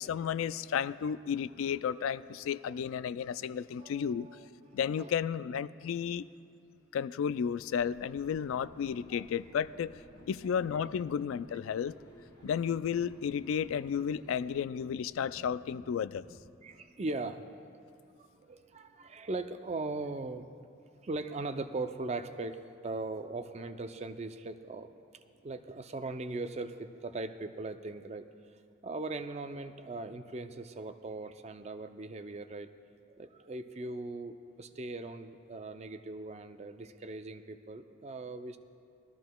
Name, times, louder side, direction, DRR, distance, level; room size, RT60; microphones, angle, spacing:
voice 1, 0.0-4.3 4.7-6.3 6.9-9.9 10.3-12.0 12.4-16.3, left 7 dB, 90° left, 17 dB, 0.3 m, -33 dB
voice 2, 3.8-5.1 9.1-9.3 10.4-10.7 12.0-12.1 12.4-12.5 15.4-15.5 16.6-17.5 18.2-20.5 21.0-24.9 25.4-28.3 28.8-32.7 33.1-38.6, right 2 dB, 35° right, 9 dB, 0.4 m, -40 dB
sound 1, 7.4-14.6, equal, 20° left, 1.0 m, -64 dB
sound 2, 7.9-16.6, left 1 dB, 60° left, 1.0 m, -57 dB
20.5 x 13.5 x 2.3 m, 2.5 s
head